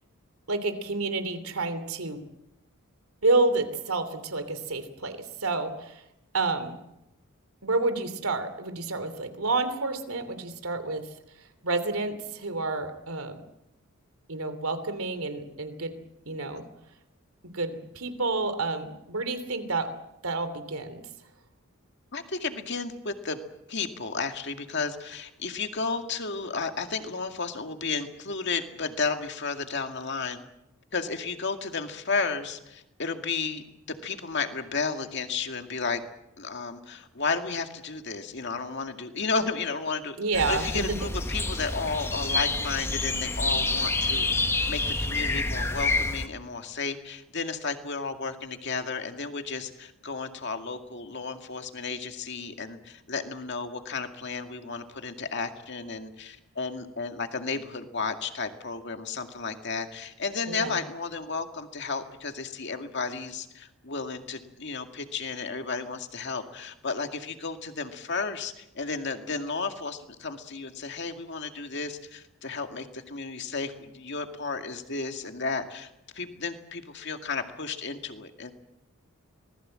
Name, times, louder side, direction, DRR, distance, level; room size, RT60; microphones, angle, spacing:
voice 1, 0.5-2.2 3.2-6.0 6.3-6.8 7.6-11.0 11.6-13.4 14.3-16.0 16.3-16.6 17.5-19.9 20.2-21.0 40.2-41.0 60.5-60.8, right 3 dB, 85° right, 10 dB, 3.0 m, -29 dB
voice 2, 22.1-23.4 23.7-30.4 30.9-33.6 34.0-36.0 36.4-40.2 40.5-44.3 44.7-78.5, left 4 dB, 55° left, 6 dB, 2.2 m, -33 dB
sound 1, 40.3-46.3, left 2 dB, 10° left, 1.1 m, -28 dB
26.0 x 20.0 x 7.7 m, 0.87 s
head